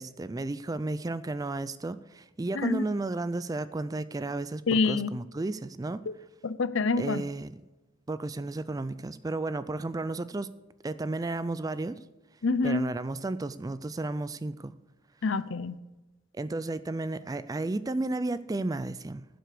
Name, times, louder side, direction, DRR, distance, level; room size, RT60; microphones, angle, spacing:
voice 1, 0.0-6.0 7.0-7.5 8.1-10.5 10.8-12.0 12.6-14.7 16.3-19.2, right 2 dB, 15° right, 0.3 m, -33 dB
voice 2, 4.7-5.1 6.1-6.2 6.4-7.2 12.4-12.9 15.2-15.8, left 4 dB, 60° left, 0.6 m, -26 dB
11.5 x 7.7 x 6.7 m
head